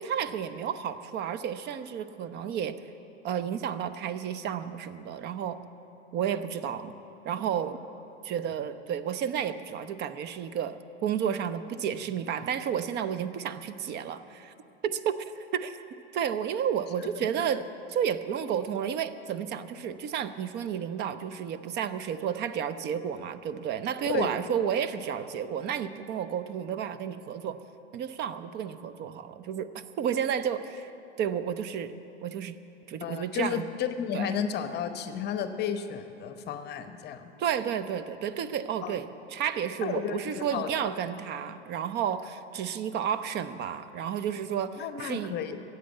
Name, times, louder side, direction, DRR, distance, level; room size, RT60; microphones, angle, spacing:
voice 1, 0.0-2.8 3.2-5.6 6.1-6.9 7.2-7.8 8.2-14.5 14.8-15.2 15.5-15.8 16.1-27.6 27.9-30.9 31.2-31.9 32.2-32.6 32.9-33.6 34.1-34.4 37.4-45.3, right 8 dB, 30° right, 13 dB, 0.6 m, -31 dB
voice 2, 33.0-37.3 38.8-38.9 39.8-40.9 44.8-45.6, left 8 dB, 30° left, 9 dB, 0.9 m, -33 dB
16.5 x 8.0 x 9.1 m, 3.0 s
figure-of-eight pair, 90°, 35 cm